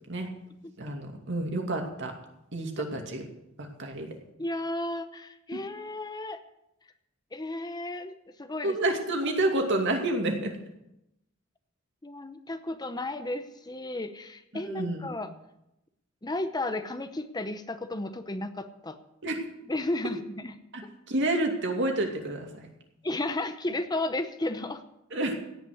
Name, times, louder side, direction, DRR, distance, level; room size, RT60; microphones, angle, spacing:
voice 1, 0.8-2.1 2.5-3.2 3.6-4.1 8.6-10.5 14.5-15.1 19.2-19.4 20.7-22.7 25.1-25.3, right 2 dB, 60° right, 2 dB, 2.5 m, -29 dB
voice 2, 4.4-6.4 7.3-8.8 12.0-15.3 16.2-19.0 19.7-20.5 23.0-24.8, left 2 dB, 20° left, 9 dB, 0.7 m, -33 dB
17.0 x 5.9 x 9.5 m, 0.86 s
head